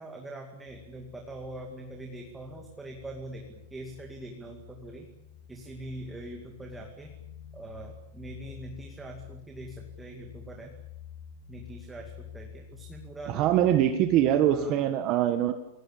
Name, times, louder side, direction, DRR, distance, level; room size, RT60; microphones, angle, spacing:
voice 1, 0.0-5.1 5.5-7.1 7.5-10.7 11.5-13.5 14.3-14.9, right 2 dB, 5° right, 2 dB, 2.4 m, -43 dB
sound 1, 0.6-14.6, left 9 dB, 60° left, 8.0 m, -49 dB
voice 2, 13.3-15.5, right 11 dB, 30° right, 8 dB, 1.6 m, -23 dB
28.0 x 18.5 x 8.7 m, 0.85 s
supercardioid pair, 170°, 0 cm